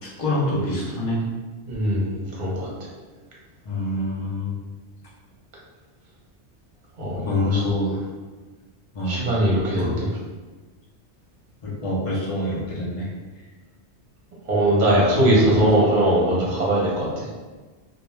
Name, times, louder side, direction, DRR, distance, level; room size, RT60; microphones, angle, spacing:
voice 1, 0.0-1.2 3.7-4.6 7.2-8.0 8.9-9.3 9.8-10.0 11.6-13.1 15.1-15.5, left 1 dB, 40° left, -5 dB, 0.6 m, -26 dB
voice 2, 1.7-2.7 7.0-7.6 9.0-10.1 14.5-17.3, right 1 dB, 45° right, -5 dB, 0.9 m, -20 dB
2.4 x 2.2 x 3.1 m, 1.3 s
omnidirectional pair, 1.2 m